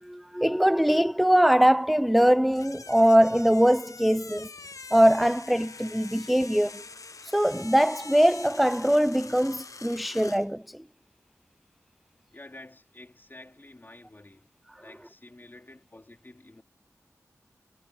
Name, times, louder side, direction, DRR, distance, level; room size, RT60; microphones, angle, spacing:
voice 1, 0.0-4.5 4.9-6.8 7.2-10.8, equal, ahead, 0.4 m, -22 dB
sound 1, 2.5-10.5, left 4 dB, 60° left, 0.8 m, -45 dB
voice 2, 12.3-14.5 14.8-16.6, left 2 dB, 35° left, 4.2 m, -49 dB
wide cardioid pair, 50°, 6 cm